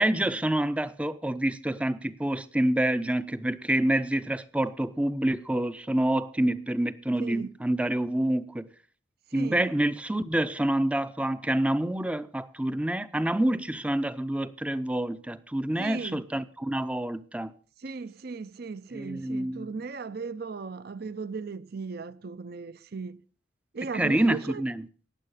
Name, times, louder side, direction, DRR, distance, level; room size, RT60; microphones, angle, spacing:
voice 1, 0.0-8.7 9.3-17.5 18.9-19.8 23.9-24.9, right 1 dB, 5° right, 0.5 m, -27 dB
voice 2, 9.3-9.8 15.8-16.2 17.8-23.2 23.7-24.6, right 4 dB, 50° right, 0.6 m, -37 dB
18.0 x 7.5 x 5.7 m
head